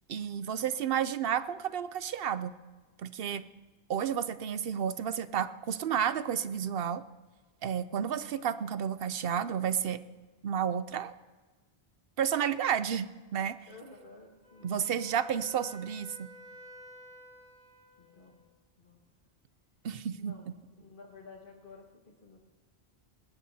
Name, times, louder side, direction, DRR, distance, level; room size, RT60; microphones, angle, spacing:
voice 1, 0.1-2.6 3.0-3.4 3.9-7.0 7.6-10.0 10.4-11.1 12.2-13.7 14.6-16.3 19.8-20.5, right 8 dB, 70° right, 13 dB, 0.8 m, -31 dB
voice 2, 13.7-15.2 18.0-18.5 18.8-19.0 20.2-20.5 20.8-22.4, left 3 dB, 55° left, -1 dB, 1.8 m, -53 dB
Wind instrument woodwind instrument, 14.4-18.5, equal, 5° left, 5.5 m, -53 dB
19.5 x 18.5 x 2.7 m, 1.3 s
omnidirectional pair, 1.1 m